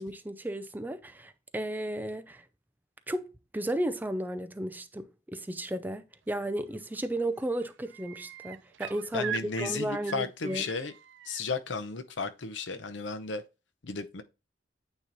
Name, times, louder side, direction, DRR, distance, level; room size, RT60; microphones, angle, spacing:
voice 1, 0.0-2.4 3.1-10.6, right 1 dB, 10° right, 0.4 m, -34 dB
sound 1, 6.7-7.1 7.4-11.4 13.1-13.2, right 9 dB, 75° right, 0.4 m, -42 dB
voice 2, 9.1-10.9 11.2-13.4 13.8-14.2, left 4 dB, 85° left, 0.8 m, -34 dB
8.9 x 3.0 x 4.0 m
head